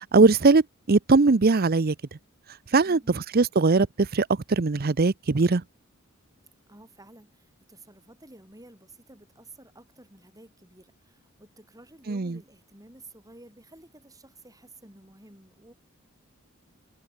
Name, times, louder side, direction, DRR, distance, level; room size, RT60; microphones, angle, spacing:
voice 1, 0.1-1.9 2.7-5.6 12.1-12.4, right 3 dB, 45° right, 0.7 m, -20 dB
voice 2, 2.8-3.2 6.7-15.7, right 2 dB, 15° right, 7.9 m, -52 dB
head